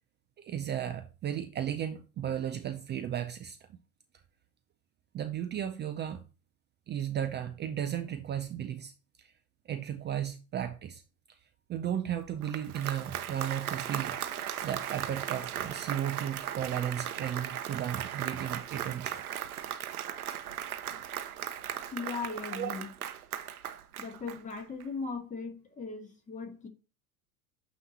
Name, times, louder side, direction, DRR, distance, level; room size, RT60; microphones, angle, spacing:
voice 1, 0.4-3.6 5.1-6.2 6.9-8.9 9.2-9.3 9.7-11.0 11.7-14.2 14.6-19.2 22.5-22.7, right 10 dB, 25° right, 0.5 m, -34 dB
Applause, 12.3-24.8, right 10 dB, 85° right, 0.7 m, -37 dB
voice 2, 21.9-22.9 24.0-26.7, left 4 dB, 15° left, 1.8 m, -38 dB
8.7 x 3.1 x 4.0 m
hypercardioid pair, 85°, 43 cm